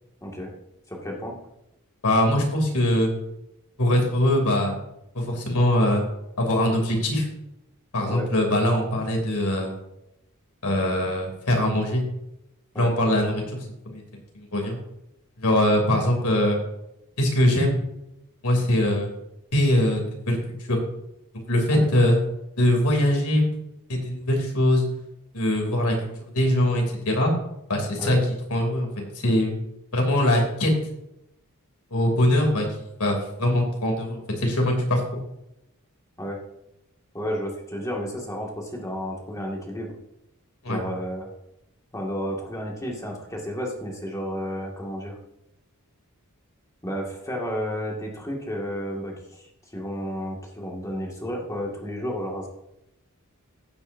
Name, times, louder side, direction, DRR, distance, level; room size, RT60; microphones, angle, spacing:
voice 1, 0.2-0.5 0.9-1.4 8.1-8.3 12.7-12.9 21.7-21.9 28.0-28.2 36.2-36.4 37.1-39.9 40.7-41.3 41.9-45.2 46.8-49.4 49.7-52.5, equal, 15° left, -1 dB, 2.1 m, -32 dB
voice 2, 2.0-3.1 3.8-4.7 5.1-6.0 6.4-7.3 7.9-9.7 10.6-12.0 12.8-13.4 13.8-14.0 14.3-14.8 15.4-16.6 17.2-17.8 18.4-19.1 19.5-20.4 20.7-20.8 21.5-22.2 22.6-23.4 23.9-24.8 25.3-26.0 26.3-27.3 27.7-28.2 28.5-29.5 29.9-30.7 31.9-32.7 33.0-35.0 40.6-40.8, left 1 dB, 85° left, 1 dB, 3.1 m, -22 dB
15.5 x 8.3 x 2.7 m, 0.85 s
head